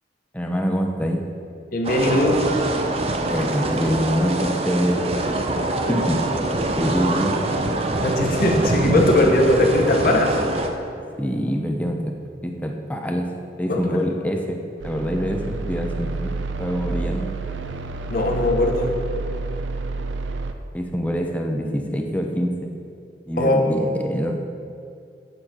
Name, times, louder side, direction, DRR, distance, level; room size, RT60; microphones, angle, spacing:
voice 1, 0.3-1.2 3.3-5.1 5.9-6.3 6.8-7.4 11.2-12.1 12.4-13.3 13.6-14.6 14.8-16.3 16.6-17.3 20.7-22.7 23.3-24.3, equal, 10° left, 2 dB, 0.6 m, -25 dB
voice 2, 1.7-2.4 8.0-10.4 13.7-14.0 18.1-18.9 23.4-23.6, left 1 dB, 50° left, 2 dB, 0.9 m, -19 dB
sound 1, 1.8-10.7, right 2 dB, 35° right, 0.6 m, -24 dB
sound 2, 14.8-20.5, right 3 dB, 85° right, 0.5 m, -29 dB
8.1 x 6.9 x 4.3 m, 2.5 s
head